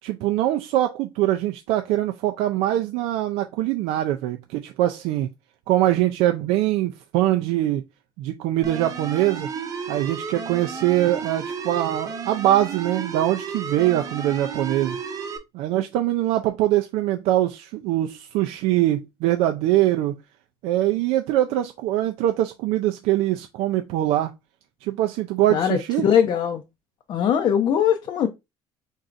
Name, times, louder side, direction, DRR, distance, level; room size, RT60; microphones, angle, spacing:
voice 1, 0.0-5.3 5.7-7.8 8.2-9.5 9.9-15.0 15.5-20.2 20.6-24.3 24.8-26.1, right 14 dB, 85° right, 0.5 m, -23 dB
sound 1, 8.6-15.4, right 6 dB, 35° right, 0.8 m, -32 dB
voice 2, 25.5-26.6 27.1-28.3, left 8 dB, 45° left, 0.6 m, -21 dB
4.5 x 4.0 x 2.5 m
cardioid pair, 140°, 10 cm